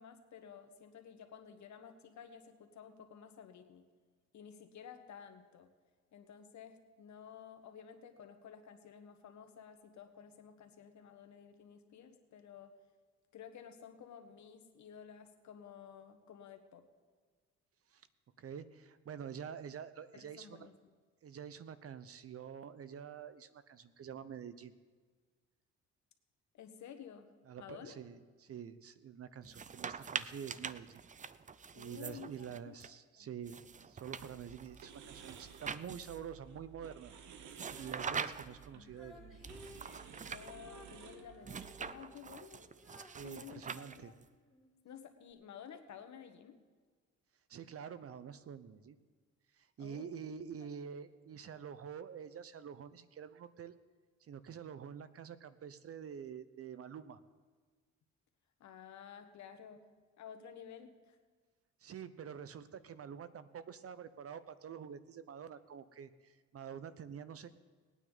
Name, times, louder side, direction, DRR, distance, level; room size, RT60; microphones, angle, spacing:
voice 1, 0.0-3.8 4.3-5.7 6.1-12.7 13.3-16.8 20.1-20.7 26.5-27.3 27.6-28.0 31.7-33.3 38.7-39.4 40.3-42.6 43.2-44.1 44.8-46.6 49.8-50.2 58.6-59.8 60.2-61.2, left 8 dB, 70° left, 6 dB, 1.5 m, -53 dB
voice 2, 18.4-20.7 21.2-24.7 27.5-31.0 31.8-37.1 37.7-39.3 43.1-44.1 47.5-49.0 49.6-53.7 54.2-57.2 61.8-67.5, right 8 dB, 50° right, 14 dB, 0.8 m, -47 dB
sound 1, 29.4-32.9 33.5-36.3 37.5-38.7 39.4-40.5 41.4-44.3, right 6 dB, 25° right, 0.5 m, -44 dB
sound 2, 34.2-41.9, right 7 dB, 75° right, 1.1 m, -55 dB
Female singing, 37.6-44.7 45.3-45.4, left 1 dB, ahead, 4.0 m, -58 dB
19.5 x 9.3 x 4.0 m, 1.5 s
cardioid pair, 90°, 30 cm